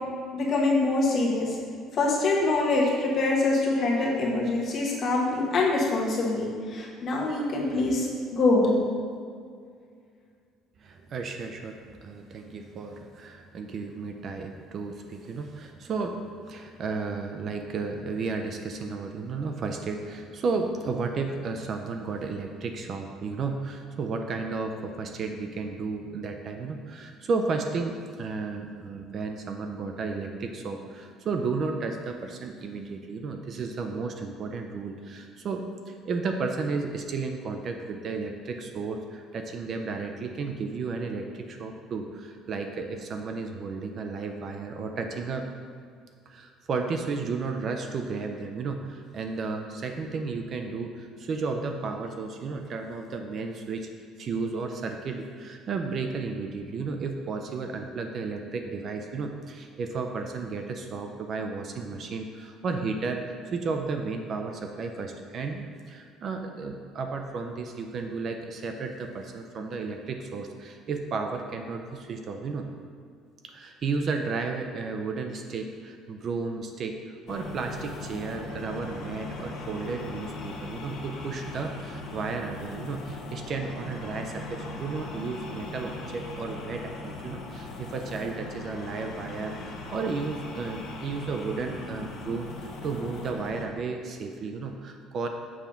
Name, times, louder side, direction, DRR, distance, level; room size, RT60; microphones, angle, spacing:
voice 1, 0.3-1.6 1.9-8.8, left 2 dB, 35° left, -3 dB, 1.2 m, -24 dB
voice 2, 10.8-45.5 46.3-53.9 54.2-72.7 73.4-95.3, right 4 dB, 35° right, 5 dB, 0.4 m, -33 dB
sound 1, 77.3-93.7, left 2 dB, 55° left, 0.8 m, -39 dB
7.1 x 3.5 x 5.7 m, 2.2 s
cardioid pair, 170°, 0 cm